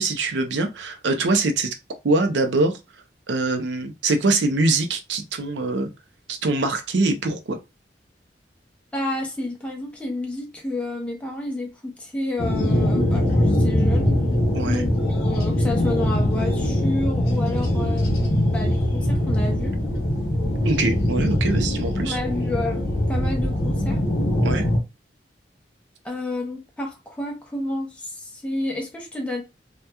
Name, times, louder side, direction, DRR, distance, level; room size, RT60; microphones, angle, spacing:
voice 1, 0.0-1.7 2.0-2.8 3.3-5.9 6.3-7.6 14.5-14.8 20.6-22.2 24.4-24.7, right 2 dB, 80° right, 0.5 m, -23 dB
voice 2, 8.9-14.2 14.7-19.8 22.0-22.8 23.1-24.0 26.0-29.4, left 1 dB, 5° left, 0.5 m, -30 dB
sound 1, 12.4-24.8, left 1 dB, 55° left, 0.9 m, -22 dB
2.8 x 2.2 x 2.2 m
head